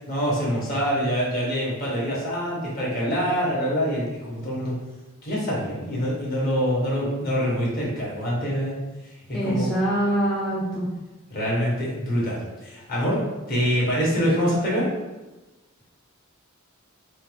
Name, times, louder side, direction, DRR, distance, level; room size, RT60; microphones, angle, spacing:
voice 1, 0.1-4.7 5.2-8.8 9.4-9.7 11.3-13.2 13.5-14.9, equal, 45° left, -6 dB, 1.3 m, -25 dB
voice 2, 9.3-10.9, right 1 dB, 5° left, -7 dB, 0.5 m, -24 dB
4.4 x 2.3 x 3.2 m, 1.1 s
head